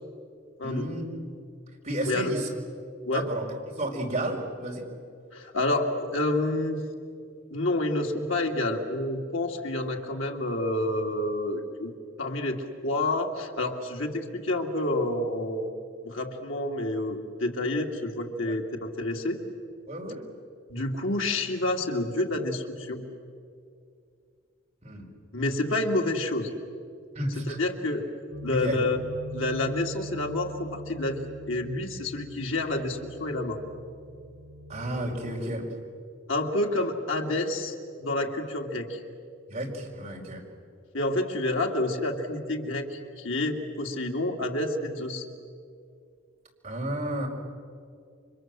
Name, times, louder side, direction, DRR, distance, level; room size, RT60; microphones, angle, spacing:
voice 1, 0.6-1.2 1.8-2.5 3.1-4.8 18.5-18.6 19.9-20.2 24.8-25.1 27.1-27.6 28.5-28.8 34.7-35.6 39.5-40.4 46.6-47.3, right 1 dB, 30° right, -1 dB, 5.0 m, -32 dB
voice 2, 5.3-6.8 7.5-15.7 16.0-19.4 20.7-23.0 25.3-26.5 27.4-28.1 28.4-29.0 29.3-33.6 36.3-39.0 40.9-45.3, left 2 dB, 75° left, 2 dB, 2.7 m, -29 dB
sound 1, 28.3-35.4, equal, 65° right, 4.5 m, -42 dB
29.5 x 25.5 x 7.7 m, 2.3 s
head